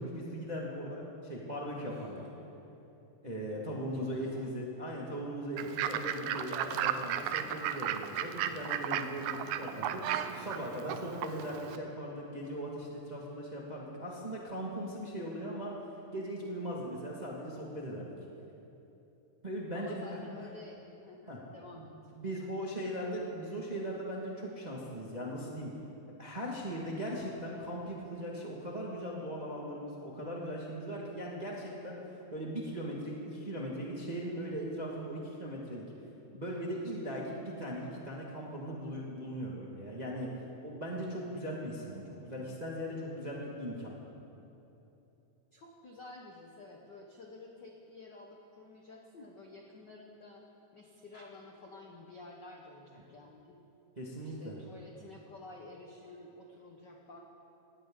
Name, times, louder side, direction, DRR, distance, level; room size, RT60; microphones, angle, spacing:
voice 1, 0.0-2.2 3.2-15.7 16.1-18.1 19.4-20.1 20.4-20.5 21.3-21.4 22.1-25.7 26.2-32.0 32.3-35.9 36.3-40.3 40.6-43.9 54.0-54.5, equal, 25° right, -3 dB, 0.8 m, -39 dB
voice 2, 1.8-2.5 3.9-4.5 19.7-22.5 45.5-50.4 50.7-53.7 54.2-57.2, left 2 dB, 70° left, 0 dB, 1.0 m, -51 dB
Fowl / Bird, 5.6-11.8, right 10 dB, 80° right, 1.9 m, -35 dB
18.5 x 16.5 x 3.7 m, 3.0 s
omnidirectional pair, 3.5 m